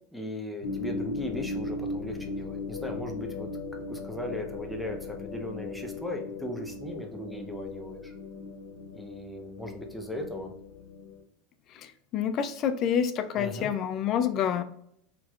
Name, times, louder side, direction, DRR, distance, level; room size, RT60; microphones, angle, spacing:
voice 1, 0.1-8.1 8.9-10.5 13.4-13.7, left 1 dB, ahead, 1 dB, 0.7 m, -37 dB
sound 1, 0.6-11.2, left 3 dB, 85° left, 0.8 m, -38 dB
voice 2, 12.1-14.6, left 8 dB, 40° left, 10 dB, 0.4 m, -27 dB
4.4 x 2.9 x 2.4 m, 0.70 s
supercardioid pair, 135°, 0 cm